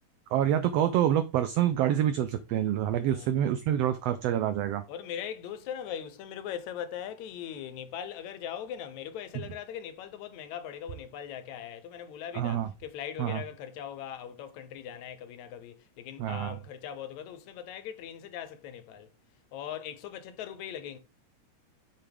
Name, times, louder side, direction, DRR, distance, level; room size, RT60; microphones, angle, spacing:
voice 1, 0.3-4.8 12.3-12.7 13.2-13.4 16.2-16.5, right 11 dB, 85° right, 1.4 m, -27 dB
voice 2, 3.0-3.5 4.9-19.1 19.5-21.0, left 9 dB, 75° left, 2.1 m, -40 dB
8.0 x 5.7 x 3.4 m
omnidirectional pair, 3.5 m